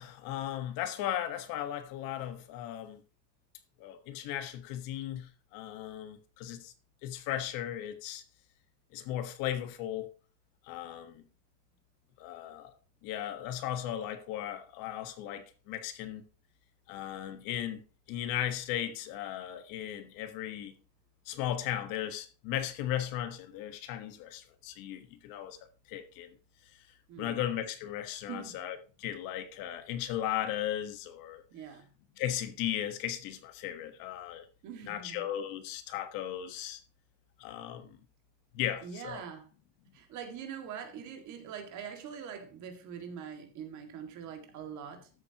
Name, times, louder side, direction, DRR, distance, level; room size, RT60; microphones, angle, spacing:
voice 1, 0.0-3.0 3.8-6.7 7.0-8.2 8.9-10.1 10.6-11.2 12.2-12.7 13.0-16.2 16.9-17.8 18.1-20.7 21.2-25.6 25.9-26.3 27.2-31.4 32.2-34.5 34.9-36.8 37.4-38.0 38.5-39.2, left 11 dB, 65° left, 1.4 m, -36 dB
voice 2, 27.1-27.4 28.3-28.5 31.5-31.9 34.6-35.2 37.8-37.9 38.8-39.5 39.9-45.1, right 7 dB, 50° right, 2.1 m, -43 dB
13.5 x 7.8 x 2.9 m
cardioid pair, 170°, 37 cm